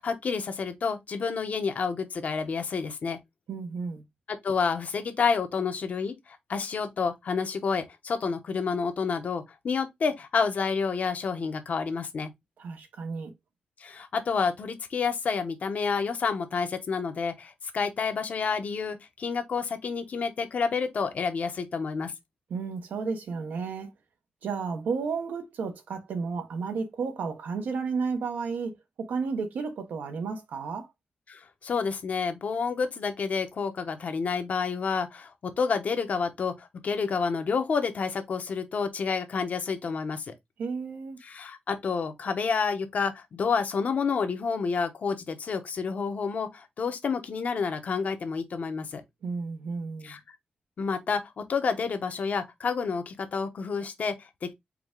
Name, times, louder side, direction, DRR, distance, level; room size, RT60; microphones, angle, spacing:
voice 1, 0.0-3.2 4.3-12.3 13.8-22.1 31.3-40.3 41.2-49.0 50.0-50.4 50.8-54.5, left 5 dB, 55° left, 0.8 m, -29 dB
voice 2, 3.5-4.0 12.6-13.3 22.5-23.9 24.4-30.9 40.6-41.2 49.2-50.2, right 5 dB, 80° right, 0.9 m, -32 dB
4.8 x 2.3 x 3.7 m
wide cardioid pair, 115°, 3 cm